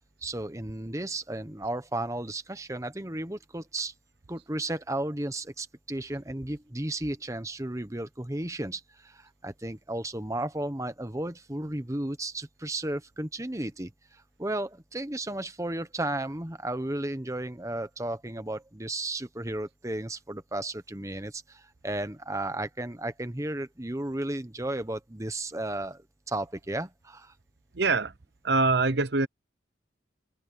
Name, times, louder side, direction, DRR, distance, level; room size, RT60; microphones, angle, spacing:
voice 1, 0.2-3.9 4.3-27.3, right 1 dB, 15° right, 1.1 m, -34 dB
voice 2, 27.7-28.1 28.4-29.3, right 3 dB, 60° right, 0.9 m, -24 dB
head